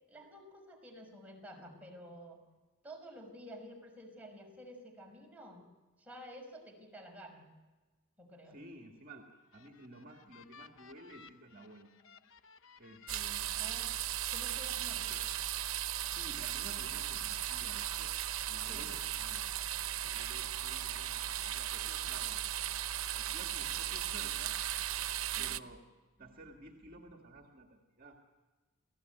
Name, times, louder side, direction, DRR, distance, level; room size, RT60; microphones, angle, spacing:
voice 1, 0.0-2.4 2.8-5.6 6.0-7.5 8.2-8.6 13.6-14.0 14.3-15.0 18.7-18.9 25.3-25.6, equal, 5° right, 1 dB, 5.7 m, -51 dB
voice 2, 8.5-9.2 9.5-11.9 12.8-13.6 14.9-15.2 16.0-18.1 18.5-19.5 20.0-22.5 22.7-24.6 25.4-25.8 26.2-28.2, right 1 dB, 45° right, 2 dB, 2.1 m, -53 dB
sound 1, 9.3-14.4 14.8-15.4, left 6 dB, 65° left, 1.0 m, -59 dB
sound 2, 13.1-25.6, right 11 dB, 75° right, 0.8 m, -37 dB
29.0 x 17.0 x 9.3 m, 1.2 s
head